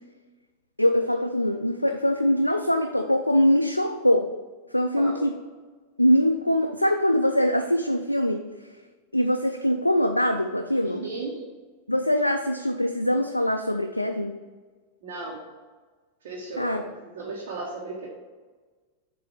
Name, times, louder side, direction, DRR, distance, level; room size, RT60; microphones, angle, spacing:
voice 1, 0.8-4.3 4.7-5.3 6.0-8.5 9.1-11.1 11.9-14.4 16.6-16.9, equal, 85° left, 5 dB, 0.3 m, -23 dB
voice 2, 10.8-11.4 15.0-15.4 16.2-18.1, right 3 dB, 55° right, -4 dB, 1.2 m, -35 dB
7.6 x 2.7 x 5.6 m, 1.4 s
figure-of-eight pair, 90°, 0 cm